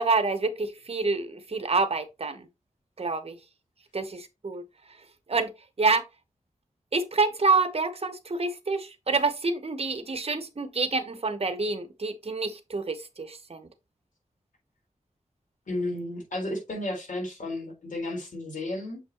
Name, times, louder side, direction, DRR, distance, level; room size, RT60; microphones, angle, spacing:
voice 1, 0.0-2.5 3.0-3.4 3.9-4.6 5.3-5.5 5.8-6.0 6.9-13.7, right 3 dB, 50° right, 1.0 m, -27 dB
voice 2, 15.7-19.0, left 1 dB, 80° left, 3.8 m, -33 dB
7.2 x 5.1 x 3.0 m
wide cardioid pair, 80°, 13 cm